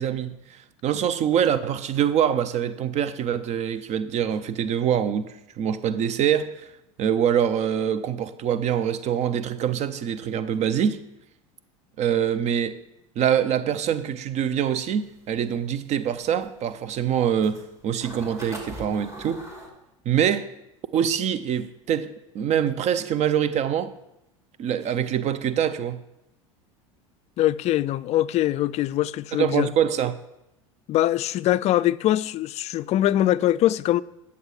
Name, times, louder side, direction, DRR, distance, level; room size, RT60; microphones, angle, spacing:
voice 1, 0.0-6.7 7.0-11.0 12.0-12.7 13.2-19.4 20.1-20.5 20.9-22.1 22.3-23.9 24.6-26.0 29.3-30.2, right 9 dB, 45° right, 0.6 m, -24 dB
sound 1, 14.7-19.7, right 1 dB, 15° right, 2.7 m, -41 dB
voice 2, 27.4-29.7 30.9-34.0, left 13 dB, 40° left, 0.4 m, -22 dB
9.7 x 7.0 x 4.8 m
hypercardioid pair, 85°, 17 cm